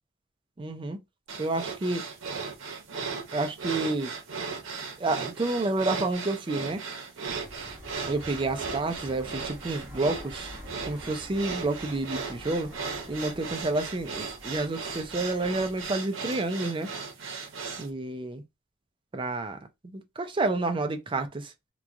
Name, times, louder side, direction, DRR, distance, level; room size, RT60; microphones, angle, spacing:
voice 1, 0.6-1.0 1.4-2.0 3.3-4.1 5.0-6.8 8.1-10.5 10.9-12.7 13.1-16.9 17.8-18.4 19.1-19.6 19.8-21.5, right 2 dB, 25° right, 0.4 m, -29 dB
sound 1, 1.3-17.9, right 5 dB, 80° right, 0.8 m, -37 dB
Fixed-wing aircraft airplane, 7.3-16.0, equal, 5° right, 1.2 m, -47 dB
2.9 x 2.3 x 2.4 m
head